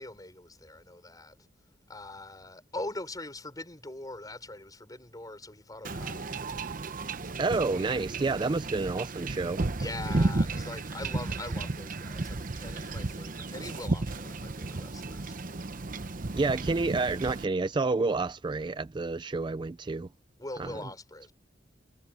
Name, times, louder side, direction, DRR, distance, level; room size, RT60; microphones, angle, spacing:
voice 1, 0.0-1.4 1.9-6.3 9.8-15.3 20.4-21.3, left 2 dB, 20° left, 5.4 m, -42 dB
Wind / Ocean / Boat Water vehicle, 5.8-17.4, right 2 dB, 50° right, 0.9 m, -33 dB
voice 2, 7.4-9.6 16.3-20.1 20.6-20.7, right 3 dB, 25° right, 0.4 m, -29 dB
head